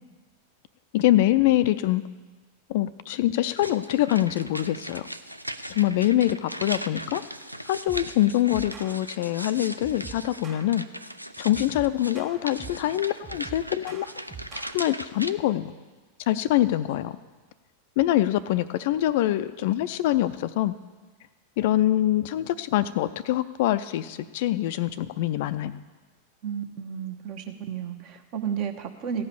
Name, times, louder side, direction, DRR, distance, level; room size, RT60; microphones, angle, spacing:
voice 1, 0.9-2.0 2.7-5.1 5.8-7.2 7.7-10.8 11.4-14.1 14.7-15.7 16.3-17.2 18.0-20.7 21.6-25.8, left 14 dB, 50° left, 13 dB, 0.4 m, -24 dB
sound 1, 3.6-15.3, equal, 90° right, 0.4 m, -38 dB
sound 2, 7.9-8.2 8.5-8.9 9.8-10.7 11.5-12.9 13.2-14.7, right 5 dB, 25° right, 1.7 m, -43 dB
voice 2, 26.4-29.2, right 8 dB, 40° right, 6 dB, 1.1 m, -32 dB
15.0 x 5.5 x 8.4 m, 1.3 s
figure-of-eight pair, 90°, 0 cm